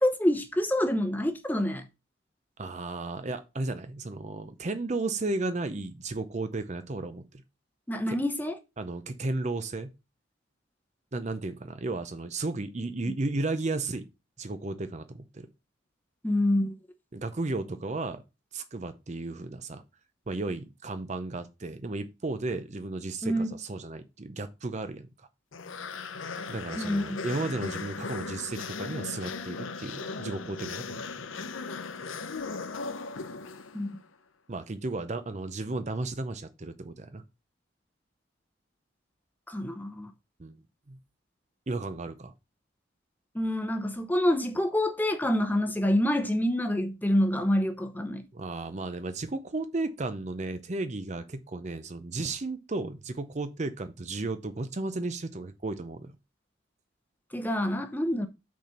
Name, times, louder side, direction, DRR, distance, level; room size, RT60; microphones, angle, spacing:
voice 1, 0.0-1.8 7.9-8.6 16.2-16.7 23.2-23.5 26.8-27.3 33.7-33.9 39.5-40.1 43.3-48.2 57.3-58.3, left 1 dB, 10° left, 0.8 m, -27 dB
voice 2, 2.6-7.2 8.1-8.2 8.8-9.9 11.1-14.0 14.4-15.5 17.1-18.2 18.5-19.8 20.3-25.1 26.5-31.2 34.5-37.2 40.4-40.6 40.9-41.0 41.7-42.3 48.3-56.1, right 2 dB, 35° right, 0.6 m, -34 dB
sound 1, 25.5-34.0, left 4 dB, 85° left, 0.7 m, -37 dB
6.1 x 4.2 x 5.7 m
head